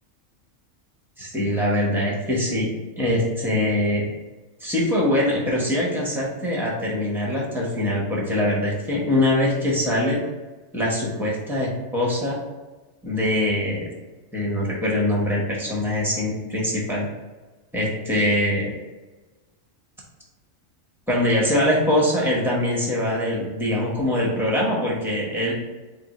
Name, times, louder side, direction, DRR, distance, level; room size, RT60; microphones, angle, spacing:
voice 1, 1.2-2.7 3.0-4.1 4.6-10.2 10.7-12.4 13.0-13.9 14.3-17.1 17.7-18.7 21.1-25.5, left 1 dB, ahead, -4 dB, 0.8 m, -23 dB
3.6 x 2.4 x 4.1 m, 1.2 s
omnidirectional pair, 1.4 m